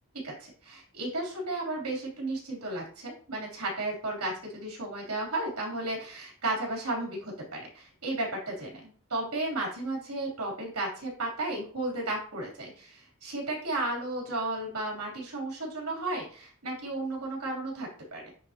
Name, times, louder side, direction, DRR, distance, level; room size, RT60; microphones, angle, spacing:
voice 1, 0.2-18.3, right 2 dB, 80° right, -2 dB, 3.3 m, -34 dB
10.0 x 3.9 x 2.9 m, 0.42 s
head